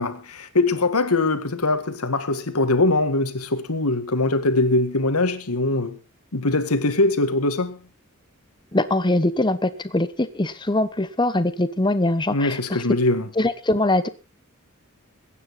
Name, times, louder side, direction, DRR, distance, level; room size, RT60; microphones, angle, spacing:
voice 1, 0.0-6.0 6.3-7.8 12.3-13.3, left 2 dB, 80° left, 1.9 m, -22 dB
voice 2, 8.7-12.6 13.4-14.1, left 2 dB, 20° left, 0.9 m, -22 dB
22.5 x 9.6 x 4.1 m
head